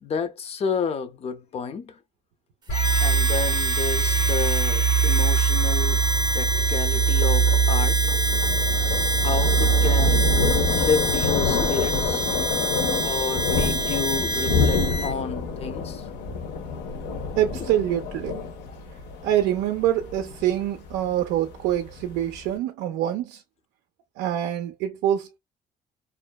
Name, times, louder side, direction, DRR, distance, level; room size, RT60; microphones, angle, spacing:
voice 1, 0.0-2.0 3.0-6.0 6.3-8.0 9.2-10.2 10.7-12.3 13.0-16.0 18.7-18.8, left 5 dB, 35° left, 0.5 m, -30 dB
sound 1, 2.7-11.8, right 7 dB, 70° left, 1.3 m, -23 dB
Harmonica, 2.7-15.1, right 1 dB, 25° right, 0.6 m, -27 dB
Thunder, 5.6-22.5, left 5 dB, 90° left, 0.7 m, -28 dB
voice 2, 17.4-18.4 19.2-23.4 24.2-25.4, right 11 dB, 85° right, 0.4 m, -25 dB
2.6 x 2.1 x 2.2 m
cardioid pair, 110°, 17 cm